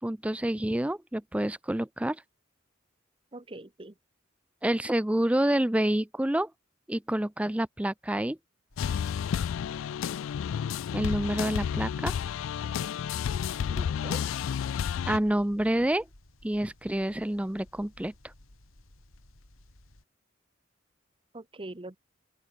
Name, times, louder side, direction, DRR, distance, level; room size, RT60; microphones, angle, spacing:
voice 1, 0.0-2.2 4.6-6.5 6.9-8.4 10.9-12.1 15.1-16.1 16.4-18.1, right 1 dB, 5° right, 0.4 m, -28 dB
voice 2, 3.3-3.9 13.7-14.2 21.3-22.0, right 2 dB, 25° right, 0.9 m, -42 dB
sound 1, 8.7-20.0, left 1 dB, 90° left, 3.0 m, -57 dB
sound 2, 8.8-15.2, left 8 dB, 75° left, 0.3 m, -31 dB
open air
head